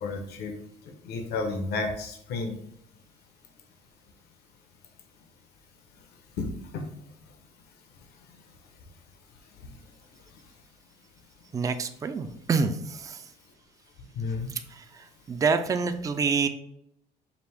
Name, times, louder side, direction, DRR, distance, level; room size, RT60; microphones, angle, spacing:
voice 1, 0.0-0.5 1.0-2.5 6.4-6.8 14.1-14.5, left 3 dB, 70° left, 4 dB, 0.8 m, -31 dB
voice 2, 11.5-13.3 14.5-16.5, right 5 dB, 20° right, 9 dB, 0.3 m, -27 dB
5.1 x 2.5 x 3.3 m, 0.74 s
cardioid pair, 110°, 17 cm